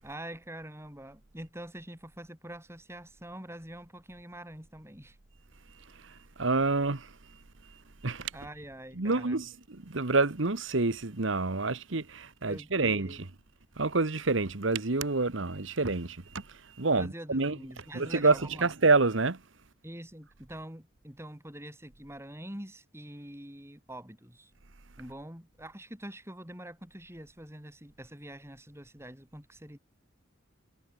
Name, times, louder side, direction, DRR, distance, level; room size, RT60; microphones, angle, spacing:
voice 1, 0.0-5.2 8.3-9.4 12.5-13.2 16.9-18.7 19.8-24.5 25.0-29.8, right 1 dB, 15° right, 6.3 m, -45 dB
voice 2, 5.9-7.2 8.0-8.3 8.9-13.3 13.8-17.6 17.9-19.4, right 3 dB, 65° right, 1.4 m, -28 dB
head